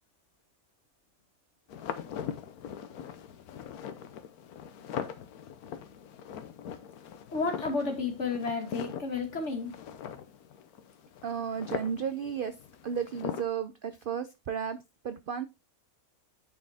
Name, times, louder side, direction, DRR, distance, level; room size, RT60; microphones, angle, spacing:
sound 1, 1.7-13.4, left 8 dB, 90° left, 1.3 m, -41 dB
voice 1, 7.3-9.8, left 4 dB, 50° left, 2.1 m, -32 dB
voice 2, 11.2-12.5 12.8-14.8 15.0-15.4, right 7 dB, 60° right, 0.5 m, -33 dB
9.5 x 4.5 x 3.5 m
omnidirectional pair, 1.5 m